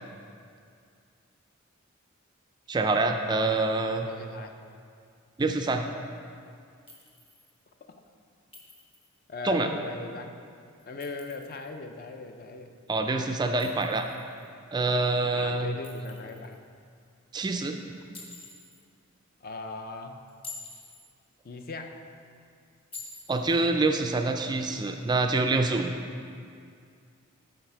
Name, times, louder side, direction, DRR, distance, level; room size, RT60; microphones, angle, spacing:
voice 1, 2.7-4.1 5.4-5.9 9.4-9.7 12.9-14.1 14.7-15.8 17.3-17.8 23.3-25.9, right 3 dB, 20° right, 5 dB, 0.3 m, -26 dB
voice 2, 4.0-4.6 9.3-10.3 10.8-12.8 15.3-16.6 19.4-20.2 21.4-22.0, left 3 dB, 45° left, 5 dB, 0.5 m, -39 dB
Chink clink, 6.9-7.5 8.5-9.2 10.8-11.7 13.6-14.5 15.8-16.6 18.1-18.8 20.3-21.1 22.9-23.6, left 3 dB, 25° left, 1.0 m, -47 dB
8.9 x 4.0 x 5.7 m, 2.3 s
head